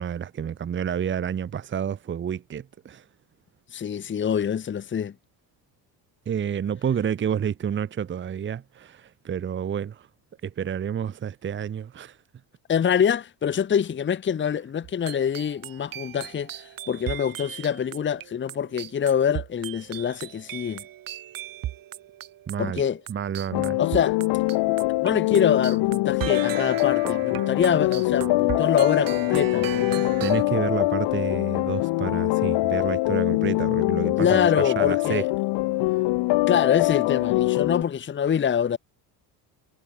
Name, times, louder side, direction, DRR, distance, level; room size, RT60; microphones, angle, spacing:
voice 1, 0.0-3.0 6.3-10.1 10.4-12.2 22.5-22.8 23.1-23.8 30.2-35.2 35.9-36.0, right 8 dB, 25° right, 1.2 m, -29 dB
voice 2, 3.7-5.1 12.7-20.8 22.6-23.0 23.8-24.2 24.7-30.0 34.2-35.3 36.5-38.8, left 8 dB, 25° left, 1.5 m, -25 dB
sound 1, 14.8-25.1 25.3-30.4, right 13 dB, 50° right, 4.3 m, -37 dB
sound 2, 23.5-37.8, left 21 dB, 75° left, 2.2 m, -23 dB
cardioid pair, 145°, 43 cm